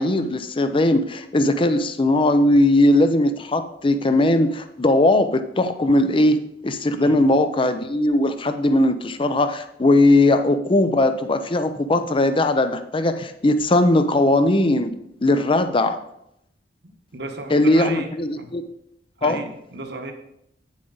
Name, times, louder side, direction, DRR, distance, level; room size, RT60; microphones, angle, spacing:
voice 1, 0.0-14.9 15.2-16.0 17.5-18.6 19.2-19.4, left 1 dB, 30° left, 9 dB, 0.6 m, -19 dB
voice 2, 16.8-18.5 19.2-20.1, right 2 dB, 65° right, 5 dB, 1.2 m, -34 dB
9.0 x 7.3 x 3.9 m, 0.77 s
head